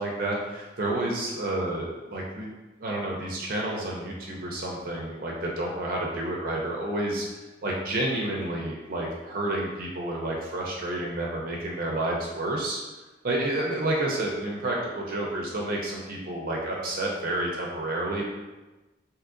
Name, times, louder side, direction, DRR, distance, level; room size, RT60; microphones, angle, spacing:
voice 1, 0.0-2.5 2.8-7.3 7.6-12.8 13.2-18.3, right 1 dB, 50° right, -2 dB, 0.5 m, -30 dB
3.6 x 2.8 x 2.4 m, 1.2 s
head